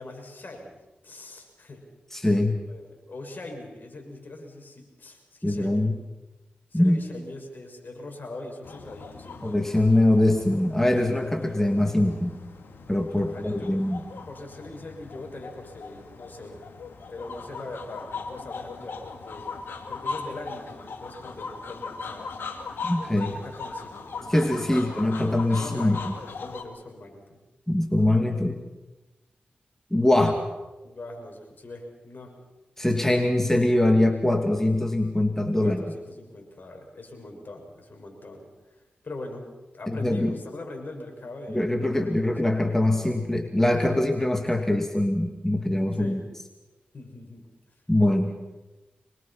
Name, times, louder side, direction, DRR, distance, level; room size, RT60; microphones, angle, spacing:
voice 1, 0.0-1.8 2.7-5.9 6.7-9.5 13.3-13.7 14.3-16.6 17.1-19.5 19.9-22.3 23.1-24.1 24.6-24.8 25.5-27.4 30.8-32.3 35.5-39.5 39.7-42.4 45.9-46.2 46.9-47.5 48.3-48.4, left 2 dB, 55° left, 2 dB, 6.6 m, -41 dB
voice 2, 2.1-2.6 5.4-6.0 6.7-7.0 9.4-12.4 12.9-14.0 22.8-23.3 24.3-26.1 27.7-28.6 29.9-30.4 32.8-35.8 39.9-40.3 41.5-46.2 47.9-48.3, left 1 dB, 10° left, 4 dB, 2.5 m, -23 dB
sound 1, 8.6-26.6, left 4 dB, 80° left, 2.3 m, -39 dB
25.5 x 22.0 x 5.9 m, 1.1 s
cardioid pair, 50°, 4 cm